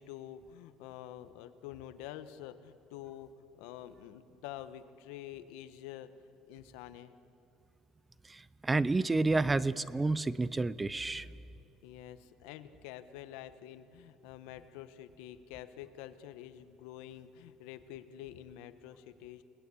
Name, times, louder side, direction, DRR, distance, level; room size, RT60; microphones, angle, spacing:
voice 1, 0.0-6.1 6.5-7.1 11.8-19.4, left 12 dB, 90° left, 11 dB, 1.2 m, -47 dB
voice 2, 8.3-11.3, right 3 dB, 10° right, 18 dB, 0.5 m, -30 dB
29.5 x 19.0 x 8.4 m, 2.7 s
cardioid pair, 155°, 0 cm